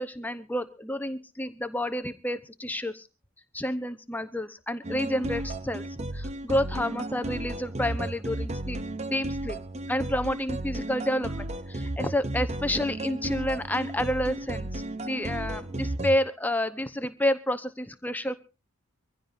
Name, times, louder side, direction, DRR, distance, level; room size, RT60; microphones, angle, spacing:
voice 1, 0.0-3.1 3.5-8.8 9.1-9.6 9.9-18.4, left 1 dB, 10° left, 11 dB, 0.8 m, -30 dB
sound 1, 4.8-16.2, right 1 dB, 30° right, 0.7 m, -34 dB
24.0 x 15.5 x 2.6 m, 0.31 s
head